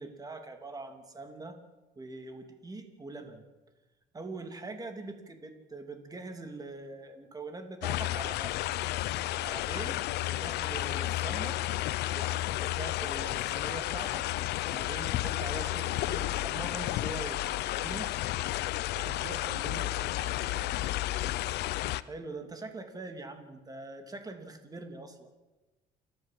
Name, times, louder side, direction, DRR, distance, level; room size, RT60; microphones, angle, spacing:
voice 1, 0.0-1.6 2.0-3.5 4.1-8.6 9.4-10.0 10.3-11.6 12.1-14.3 14.6-18.1 22.0-25.3, right 3 dB, 20° right, 6 dB, 3.1 m, -43 dB
sound 1, 7.8-22.0, left 16 dB, 75° left, 0.7 m, -32 dB
voice 2, 18.9-21.6, right 6 dB, 70° right, 7 dB, 2.1 m, -47 dB
28.5 x 13.0 x 7.7 m, 1.1 s
cardioid pair, 110°, 17 cm